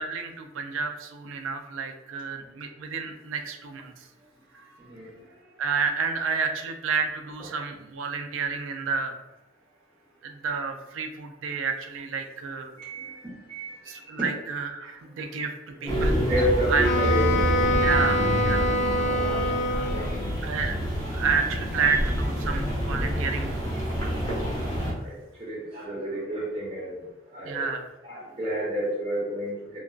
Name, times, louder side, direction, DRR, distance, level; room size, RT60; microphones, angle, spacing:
voice 1, 0.0-4.1 4.5-4.6 5.6-9.2 10.2-12.8 13.9-15.5 15.8-16.2 16.5-16.9 17.8-19.4 20.4-20.8 21.1-23.7 27.4-27.9, right 5 dB, 85° right, 6 dB, 0.4 m, -30 dB
voice 2, 4.8-5.1 12.8-14.3 15.2-15.4 15.8-17.5 19.1-19.4 19.9-20.2 21.1-21.4 23.9-24.0 24.8-27.1 27.3-27.7 28.0-29.8, right 1 dB, 25° right, -7 dB, 0.6 m, -31 dB
sound 1, 15.9-24.9, equal, 20° left, 0.8 m, -27 dB
Wind instrument woodwind instrument, 16.8-20.4, left 1 dB, 60° left, 0.5 m, -26 dB
2.5 x 2.3 x 2.2 m, 1.0 s
head